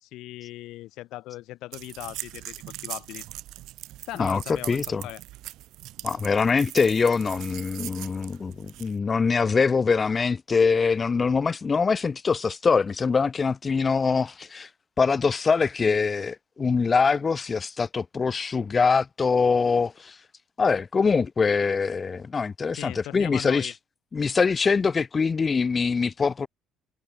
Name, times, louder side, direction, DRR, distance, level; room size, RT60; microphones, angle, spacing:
voice 1, 0.0-3.2 4.1-5.2 22.8-23.7, left 17 dB, 65° left, 0.6 m, -39 dB
sound 1, 1.7-9.0, right 16 dB, 65° right, 0.5 m, -40 dB
voice 2, 4.1-5.1 6.0-14.7 15.0-20.2 20.6-23.7 24.1-26.5, left 5 dB, 20° left, 0.3 m, -23 dB
cardioid pair, 165°, 0 cm